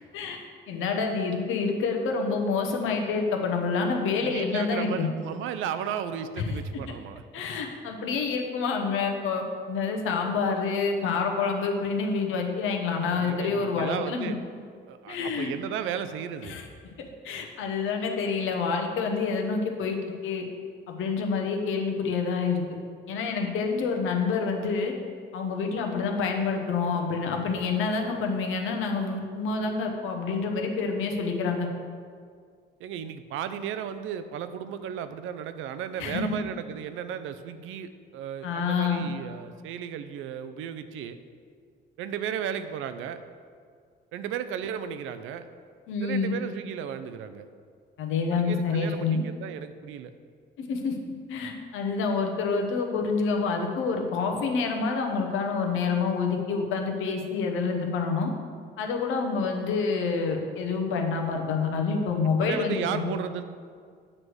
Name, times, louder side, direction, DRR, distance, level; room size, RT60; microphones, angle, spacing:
voice 1, 0.1-5.1 6.4-6.5 7.3-14.3 15.1-15.5 16.5-16.6 17.0-20.4 20.9-22.6 23.1-24.9 25.3-31.7 36.0-36.4 38.4-39.0 45.9-46.3 48.0-49.2 50.6-51.0 51.3-58.3 58.8-63.1, left 4 dB, 85° left, 3 dB, 0.9 m, -27 dB
voice 2, 4.2-7.2 13.0-14.4 14.9-16.6 32.8-41.2 42.0-43.2 44.1-45.5 46.0-47.5 48.3-50.1 62.4-63.4, right 8 dB, 85° right, 11 dB, 0.4 m, -34 dB
7.4 x 3.2 x 6.3 m, 2.1 s
cardioid pair, 90°, 20 cm